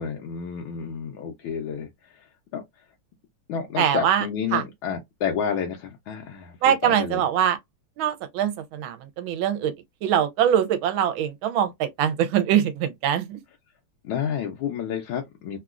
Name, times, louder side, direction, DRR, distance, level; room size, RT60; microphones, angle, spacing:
voice 1, 0.0-2.6 3.5-7.2 14.0-15.6, left 7 dB, 75° left, 1.4 m, -30 dB
voice 2, 3.8-4.2 4.5-4.6 6.6-7.6 8.0-9.7 10.0-13.4, right 10 dB, 75° right, 1.4 m, -23 dB
3.6 x 2.3 x 2.4 m
omnidirectional pair, 2.3 m